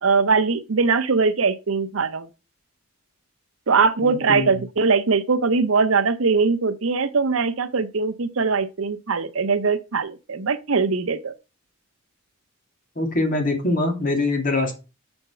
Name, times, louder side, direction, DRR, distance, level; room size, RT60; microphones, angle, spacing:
voice 1, 0.0-2.3 3.7-11.3, right 4 dB, 80° right, 0.7 m, -21 dB
voice 2, 4.0-4.6 13.0-14.7, left 2 dB, 45° left, 2.4 m, -23 dB
7.0 x 4.4 x 5.6 m
head